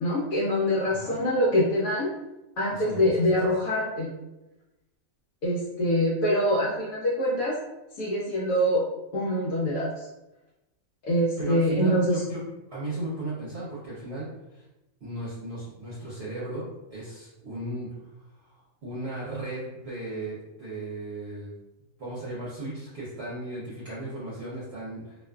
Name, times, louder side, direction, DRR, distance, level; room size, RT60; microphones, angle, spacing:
voice 1, 0.0-2.1 2.6-4.1 5.4-7.6 8.0-8.8 9.1-10.1 11.0-12.2, equal, 90° left, -7 dB, 1.1 m, -24 dB
voice 2, 0.9-1.2 2.7-3.1 11.4-12.4 12.7-14.6 15.0-17.9 18.4-21.5 22.0-25.2, right 2 dB, 55° right, -9 dB, 0.8 m, -36 dB
2.5 x 2.4 x 2.2 m, 0.96 s
omnidirectional pair, 1.5 m